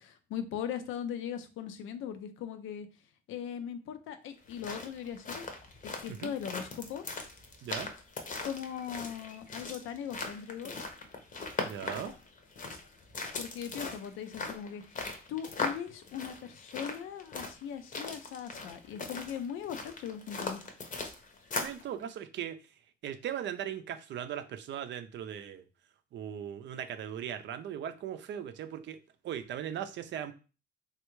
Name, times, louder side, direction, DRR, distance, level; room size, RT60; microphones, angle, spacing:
voice 1, 0.0-2.9 3.3-5.4 6.0-7.0 8.4-10.7 13.4-20.6, left 8 dB, 85° left, 8 dB, 0.5 m, -39 dB
sound 1, 4.4-21.8, left 3 dB, 40° left, 0.7 m, -39 dB
voice 2, 11.6-12.1 21.5-22.7 23.0-25.6 26.1-30.3, right 9 dB, 65° right, 9 dB, 0.5 m, -38 dB
3.3 x 2.4 x 3.0 m, 0.33 s
cardioid pair, 90°, 20 cm